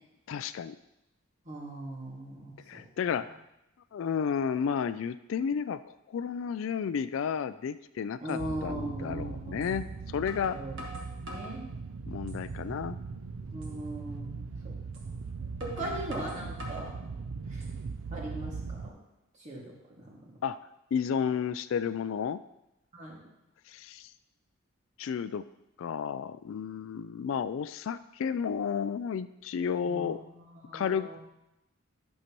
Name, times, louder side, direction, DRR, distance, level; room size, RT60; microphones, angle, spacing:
voice 1, 0.3-0.8 2.7-3.4 3.9-10.6 12.1-13.0 15.8-15.9 20.4-20.6 20.9-22.4 23.7-24.1 25.0-25.5 25.8-30.2 30.7-31.2, left 7 dB, 65° left, 13 dB, 0.3 m, -32 dB
voice 2, 1.5-2.8 8.2-9.8 10.5-10.8 11.2-11.7 13.5-14.7 15.6-17.0 17.5-17.6 18.1-19.0 19.4-20.4 22.9-23.2 29.9-31.2, right 1 dB, 35° right, -4 dB, 2.0 m, -40 dB
sound 1, 8.3-8.4 9.6-9.7 10.3-11.6 12.1-12.6 13.0-13.1 13.6-13.8 14.9-15.1 15.6-16.9 17.4-18.0, equal, 65° right, 1.6 m, -45 dB
sound 2, 8.4-18.9, right 4 dB, 85° right, 0.5 m, -39 dB
11.5 x 6.5 x 3.0 m, 0.91 s
head